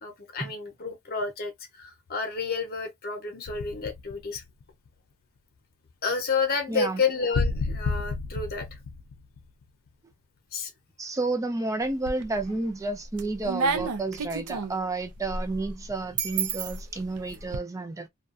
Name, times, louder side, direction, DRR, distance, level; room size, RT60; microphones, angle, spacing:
voice 1, 0.0-4.4 6.0-8.8 10.5-10.7, left 4 dB, 45° left, 0.8 m, -30 dB
sound 1, 3.5-4.9 7.3-9.9, left 4 dB, 75° left, 0.4 m, -31 dB
voice 2, 6.7-7.0 11.0-18.1, right 2 dB, 15° right, 0.4 m, -31 dB
sound 2, 11.8-12.5 12.9-17.6, right 5 dB, 80° right, 0.5 m, -31 dB
2.4 x 2.3 x 2.4 m
head